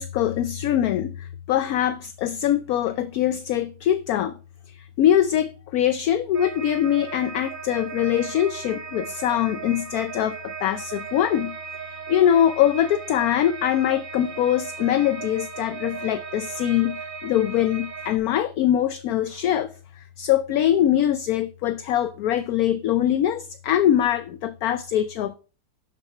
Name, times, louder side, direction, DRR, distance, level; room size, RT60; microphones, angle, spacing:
voice 1, 0.0-4.4 4.7-11.6 12.1-25.3, left 11 dB, 70° left, 0.9 m, -23 dB
sound 1, 6.3-18.2, right 6 dB, 25° right, 1.8 m, -37 dB
11.5 x 6.1 x 4.3 m
omnidirectional pair, 2.0 m